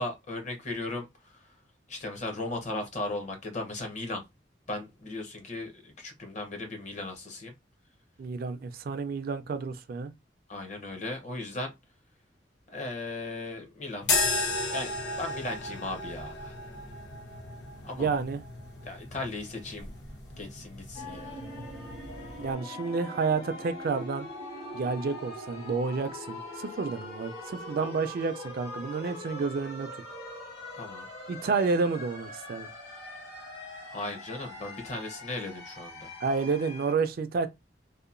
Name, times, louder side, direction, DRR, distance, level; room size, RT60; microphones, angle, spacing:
voice 1, 0.0-1.4 1.9-4.2 4.7-7.5 10.5-11.7 12.7-14.1 14.7-16.5 17.8-18.1 18.8-19.9 20.4-21.4 27.8-27.9 30.7-31.1 33.8-36.1, left 2 dB, 40° left, 0.7 m, -37 dB
voice 2, 8.2-10.1 18.0-18.4 22.4-24.3 24.7-29.9 31.3-32.7 36.2-37.5, right 4 dB, 55° right, 0.3 m, -30 dB
sound 1, 14.0-22.5, left 2 dB, 90° left, 0.9 m, -34 dB
sound 2, 20.9-36.9, left 1 dB, 65° left, 1.1 m, -42 dB
2.8 x 2.1 x 2.5 m
head